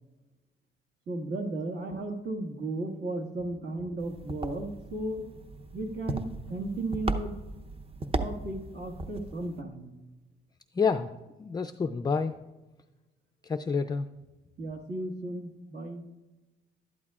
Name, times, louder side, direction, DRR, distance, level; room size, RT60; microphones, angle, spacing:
voice 1, 1.1-5.2 5.7-7.3 8.2-9.9 14.6-16.0, right 2 dB, 55° right, 1 dB, 1.8 m, -35 dB
sound 1, 4.0-9.6, right 2 dB, 30° right, 0.8 m, -37 dB
voice 2, 10.8-11.1 11.4-12.4 13.4-14.1, left 5 dB, 20° left, 6 dB, 0.4 m, -28 dB
12.0 x 10.5 x 2.4 m, 1.1 s
cardioid pair, 90°, 20 cm